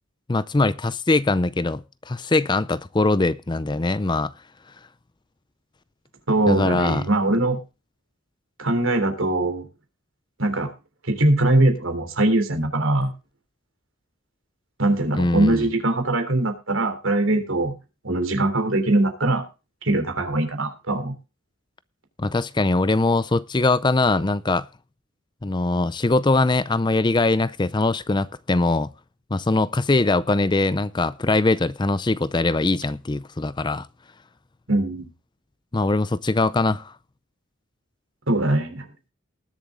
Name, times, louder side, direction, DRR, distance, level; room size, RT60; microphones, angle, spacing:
voice 1, 0.3-4.3 6.5-7.1 15.2-15.7 22.2-24.7 25.4-28.9 29.3-33.9 35.7-36.9, left 2 dB, 20° left, 0.5 m, -22 dB
voice 2, 6.3-7.6 8.6-9.6 10.4-10.7 11.0-13.1 14.8-17.7 18.0-19.4 19.8-21.1 34.7-35.1 38.3-38.8, right 2 dB, 70° right, 3.4 m, -21 dB
20.0 x 7.3 x 3.7 m
head